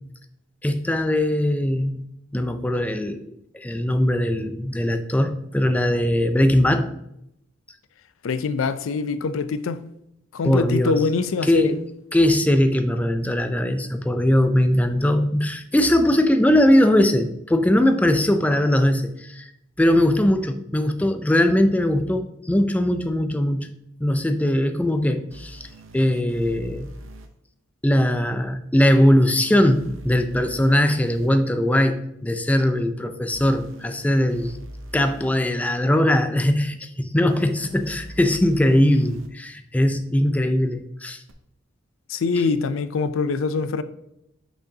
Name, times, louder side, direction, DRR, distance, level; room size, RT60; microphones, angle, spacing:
voice 1, 0.6-2.1 2.3-7.0 10.4-11.0 11.4-11.7 12.1-19.5 19.8-23.7 24.0-25.7 25.9-26.9 27.8-34.5 34.9-41.2, left 1 dB, 10° left, 0.4 m, -20 dB
voice 2, 8.2-9.8 10.3-11.7 42.1-43.8, left 4 dB, 85° left, 0.4 m, -24 dB
sound 1, 25.3-27.3 29.3-31.3 33.3-35.3 37.3-39.3 41.3-41.4, right 1 dB, 90° right, 0.7 m, -42 dB
6.5 x 6.1 x 2.8 m
head